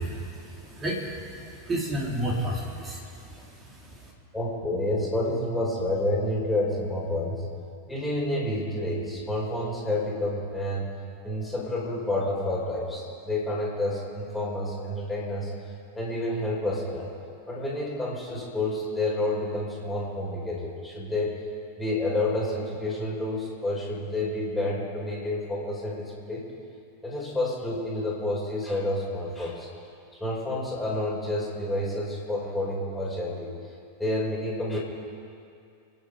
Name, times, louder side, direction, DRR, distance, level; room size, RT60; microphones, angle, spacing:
voice 1, 0.0-4.1, right 1 dB, 20° right, -3 dB, 4.1 m, -32 dB
voice 2, 4.3-7.4 7.9-10.9 11.2-15.5 15.9-17.1 17.5-21.4 21.8-26.5 27.0-29.7 30.2-33.5 34.0-34.8, left 1 dB, 5° left, -6 dB, 5.4 m, -29 dB
28.0 x 9.6 x 5.2 m, 2.4 s
figure-of-eight pair, 90°, 0 cm